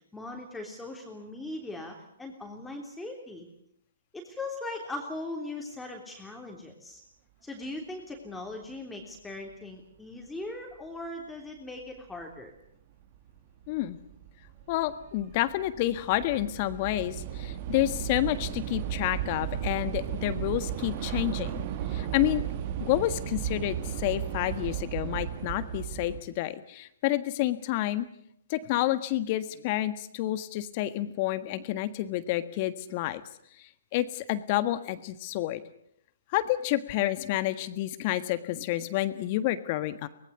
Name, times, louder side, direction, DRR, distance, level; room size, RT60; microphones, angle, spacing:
voice 1, 0.1-3.5 4.1-7.0 7.4-12.5, left 2 dB, 5° left, 1 dB, 3.3 m, -39 dB
Train / Subway metro underground, 12.2-12.3 13.1-13.4 13.6-26.2, right 10 dB, 40° right, 1.8 m, -35 dB
voice 2, 13.7-14.0 14.7-21.6 21.9-22.4 22.8-28.1 28.5-33.2 33.9-35.6 36.3-40.1, left 15 dB, 35° left, 13 dB, 1.5 m, -29 dB
24.0 x 19.5 x 8.3 m, 0.74 s
figure-of-eight pair, 125°, 0 cm